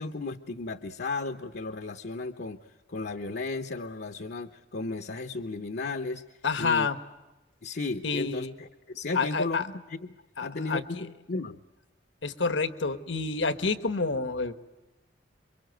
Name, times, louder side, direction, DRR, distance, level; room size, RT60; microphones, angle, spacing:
voice 1, 0.0-6.2 6.6-6.9 7.6-10.2 10.4-11.6, left 3 dB, 60° left, 8 dB, 0.9 m, -35 dB
voice 2, 6.4-7.0 8.0-8.5 9.1-9.7 10.4-11.1 12.2-14.5, left 4 dB, 80° left, 11 dB, 1.3 m, -28 dB
28.0 x 23.5 x 8.0 m, 1.0 s
head